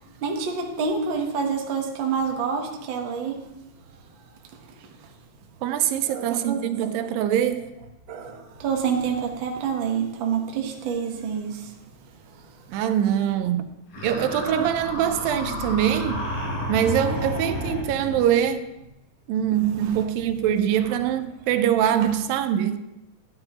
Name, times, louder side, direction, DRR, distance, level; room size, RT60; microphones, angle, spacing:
voice 1, 0.2-3.5 6.1-6.9 8.1-11.7 19.8-20.0, right 6 dB, 65° right, 1.1 m, -28 dB
voice 2, 5.6-7.7 12.7-13.7 14.0-16.3 16.7-18.7 19.3-22.8, right 10 dB, 85° right, 2.4 m, -23 dB
sound 1, 13.9-18.3, left 1 dB, 85° left, 5.3 m, -31 dB
12.5 x 10.5 x 2.9 m
omnidirectional pair, 4.1 m